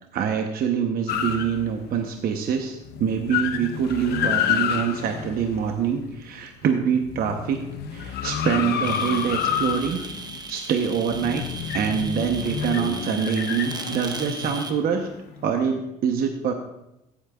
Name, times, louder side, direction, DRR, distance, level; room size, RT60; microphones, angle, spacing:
voice 1, 0.1-7.6 7.9-10.0 10.5-11.4 11.7-15.1 15.4-16.5, right 7 dB, 60° right, 4 dB, 0.9 m, -25 dB
sound 1, 1.1-2.1 2.5-2.6 2.8-6.4 6.9-15.4, left 8 dB, 75° left, 0.8 m, -29 dB
sound 2, 8.8-14.7, right 4 dB, 25° right, 1.0 m, -37 dB
14.5 x 8.6 x 2.4 m, 0.88 s
cardioid pair, 110°, 17 cm